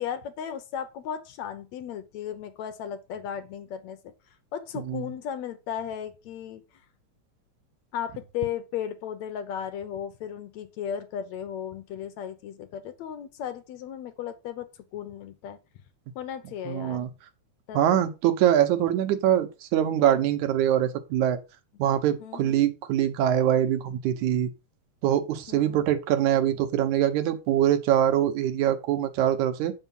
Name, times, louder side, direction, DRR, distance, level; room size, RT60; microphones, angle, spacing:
voice 1, 0.0-4.0 4.5-6.6 7.9-15.6 16.2-17.1 17.7-18.1 22.2-22.6 25.5-25.9, left 9 dB, 70° left, 2.2 m, -35 dB
voice 2, 16.7-17.1 17.7-21.4 21.8-24.5 25.0-29.7, right 11 dB, 85° right, 2.4 m, -23 dB
8.0 x 5.5 x 5.4 m
omnidirectional pair, 3.3 m